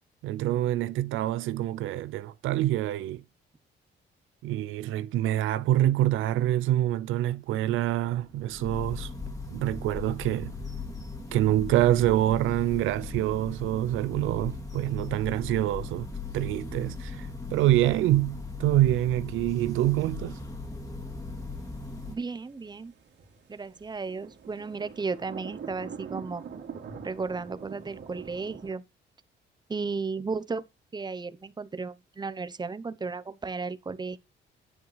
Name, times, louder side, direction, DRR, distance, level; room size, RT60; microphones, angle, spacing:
voice 1, 0.2-3.2 4.4-9.1 9.5-10.6 11.3-16.1 16.3-20.4, right 14 dB, 85° right, 0.5 m, -26 dB
sound 1, 8.1-22.1, left 3 dB, 15° left, 2.5 m, -38 dB
sound 2, 20.9-28.7, right 6 dB, 60° right, 2.6 m, -44 dB
voice 2, 22.1-22.9 23.5-26.4 27.0-28.8 29.7-30.6 30.9-34.2, right 4 dB, 20° right, 0.8 m, -34 dB
9.7 x 7.7 x 3.3 m
cardioid pair, 90°, 20 cm